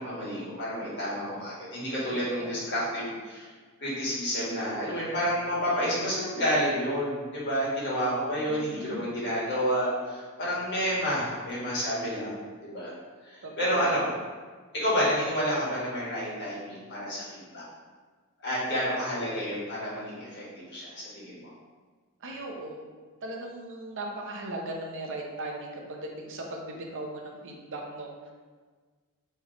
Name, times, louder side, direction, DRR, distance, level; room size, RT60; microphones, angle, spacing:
voice 1, 0.0-3.5 3.8-12.3 12.6-12.9 13.3-14.1 14.7-17.6 18.4-21.5, equal, 55° left, -8 dB, 1.5 m, -30 dB
voice 2, 2.1-3.1 8.5-9.1 13.6-13.9 22.2-22.8 23.2-28.3, right 2 dB, 60° right, 0 dB, 0.7 m, -38 dB
3.3 x 3.1 x 3.8 m, 1.5 s
head